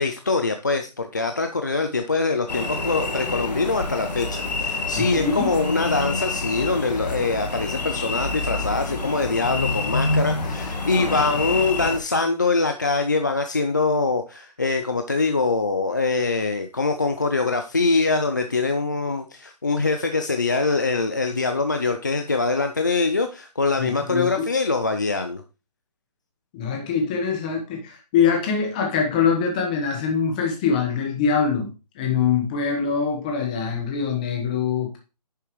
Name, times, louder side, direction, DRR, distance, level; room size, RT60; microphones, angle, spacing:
voice 1, 0.0-25.4, left 3 dB, 30° left, 6 dB, 0.4 m, -23 dB
sound 1, 2.5-12.0, left 3 dB, 85° left, 1.7 m, -27 dB
voice 2, 4.9-5.5 23.8-24.5 26.5-31.7 31.9-35.0, left 6 dB, 10° left, 2 dB, 1.1 m, -23 dB
10.0 x 6.8 x 3.1 m, 0.31 s
hypercardioid pair, 170°, 21 cm